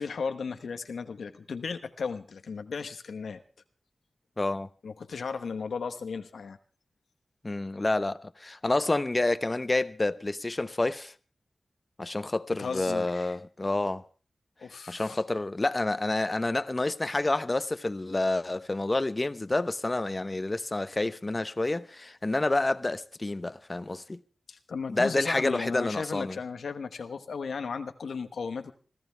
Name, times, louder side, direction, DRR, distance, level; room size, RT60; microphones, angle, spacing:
voice 1, 0.0-3.4 4.8-6.6 12.6-13.4 14.6-15.2 24.5-28.7, left 5 dB, 90° left, 1.0 m, -35 dB
voice 2, 4.4-4.7 7.4-11.1 12.0-14.0 14.9-24.2 24.9-26.4, left 2 dB, 35° left, 1.0 m, -28 dB
25.5 x 14.0 x 3.4 m
cardioid pair, 45°, 0 cm